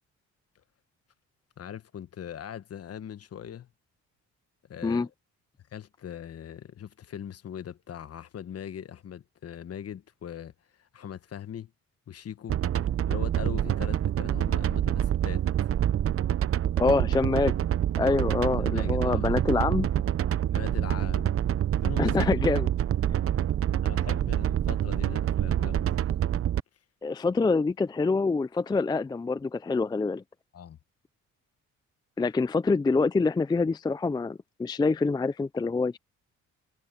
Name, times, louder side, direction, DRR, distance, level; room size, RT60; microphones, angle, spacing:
voice 1, 1.6-3.7 4.6-5.1 5.7-11.7 12.1-12.6 13.1-15.7 16.9-17.0 18.1-18.2 18.6-19.3 20.5-21.4 21.8-22.2 23.8-26.1 30.5-30.8, left 9 dB, 50° left, 1.3 m, -41 dB
sound 1, 12.5-26.6, right 11 dB, 50° right, 0.7 m, -26 dB
voice 2, 16.8-17.5 18.0-19.9 22.0-22.7 27.0-30.2 32.2-36.0, left 4 dB, 15° left, 0.4 m, -26 dB
cardioid pair, 90°, 30 cm